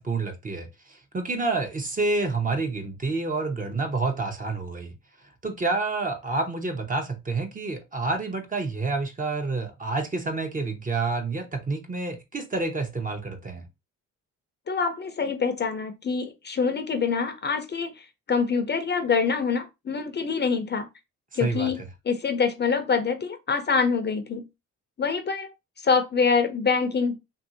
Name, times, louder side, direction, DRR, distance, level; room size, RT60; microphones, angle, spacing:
voice 1, 0.0-4.9 5.4-13.6 21.4-21.7, right 3 dB, 25° right, 0.8 m, -28 dB
voice 2, 14.7-17.9 18.3-20.9 21.3-21.8 22.1-24.4 25.0-25.5 25.8-27.2, left 5 dB, 35° left, 0.6 m, -25 dB
2.9 x 2.7 x 2.7 m
cardioid pair, 90°, 30 cm